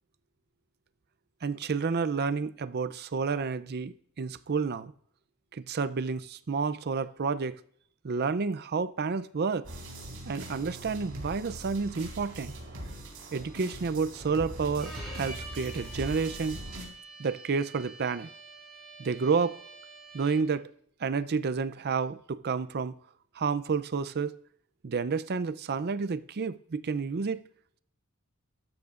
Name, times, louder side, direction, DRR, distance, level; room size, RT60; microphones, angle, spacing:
voice 1, 1.4-4.9 5.5-7.6 8.0-9.7 10.3-12.5 13.3-16.6 17.2-18.3 19.0-19.6 20.1-20.7 21.0-22.9 23.3-24.4 24.8-27.4, right 5 dB, 45° right, 0.5 m, -30 dB
sound 1, 9.6-16.8, right 1 dB, 65° right, 4.2 m, -41 dB
Bowed string instrument, 14.8-20.6, right 2 dB, ahead, 6.0 m, -47 dB
14.5 x 13.0 x 2.5 m
head